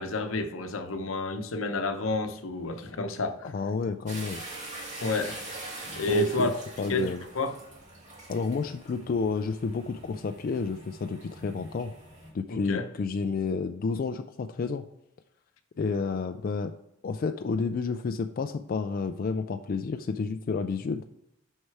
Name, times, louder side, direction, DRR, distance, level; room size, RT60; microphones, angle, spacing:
voice 1, 0.0-3.5 5.0-5.4 6.0-6.5 6.9-7.5 12.5-12.9, left 2 dB, 80° left, 8 dB, 0.8 m, -30 dB
voice 2, 3.4-4.4 6.1-6.5 6.8-7.2 8.3-11.9 12.3-14.8 15.8-16.7 17.0-21.0, left 4 dB, 45° left, 8 dB, 0.3 m, -30 dB
sound 1, 4.1-12.3, right 2 dB, 35° right, 2.3 m, -43 dB
6.4 x 5.5 x 4.7 m, 0.83 s
head